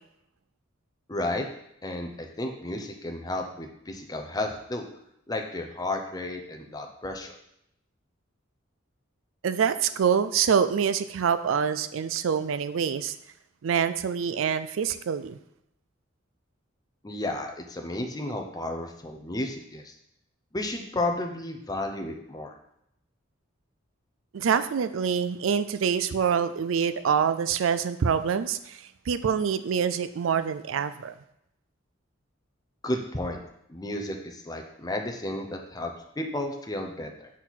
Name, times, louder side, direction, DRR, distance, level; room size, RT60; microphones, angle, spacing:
voice 1, 1.1-1.5 1.8-4.8 5.3-7.4 17.0-19.9 20.5-22.5 24.4-24.5 32.8-33.4 33.7-37.3, left 1 dB, 20° left, 3 dB, 0.7 m, -32 dB
voice 2, 9.4-13.2 13.6-15.4 24.3-31.1, right 7 dB, 75° right, 13 dB, 0.4 m, -26 dB
6.1 x 4.3 x 4.1 m, 0.78 s
head